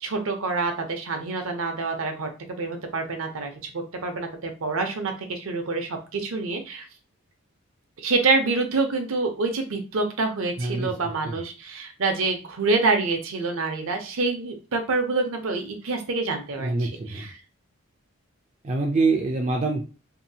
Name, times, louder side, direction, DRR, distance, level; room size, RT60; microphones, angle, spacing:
voice 1, 0.0-6.9 8.0-17.3, right 3 dB, 70° right, 5 dB, 0.6 m, -27 dB
voice 2, 10.6-11.4 16.6-17.3 18.6-19.8, right 3 dB, 30° right, 1 dB, 0.3 m, -25 dB
2.7 x 2.3 x 2.7 m, 0.34 s
head